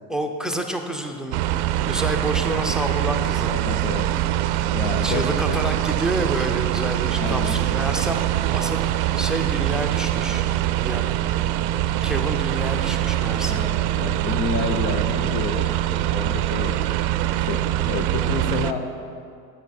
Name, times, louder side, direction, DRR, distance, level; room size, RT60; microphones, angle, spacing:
voice 1, 0.1-3.6 5.0-8.3 8.5-10.4 10.8-11.1 12.0-13.7, right 1 dB, ahead, 5 dB, 0.4 m, -29 dB
sound 1, 1.3-18.7, right 13 dB, 55° right, 0.5 m, -23 dB
voice 2, 3.5-4.1 4.7-5.6 7.1-7.6 13.5-15.7 16.1-16.8 17.4-18.9, left 5 dB, 65° left, 6 dB, 0.8 m, -29 dB
8.8 x 7.1 x 4.3 m, 2.4 s
hypercardioid pair, 90°, 48 cm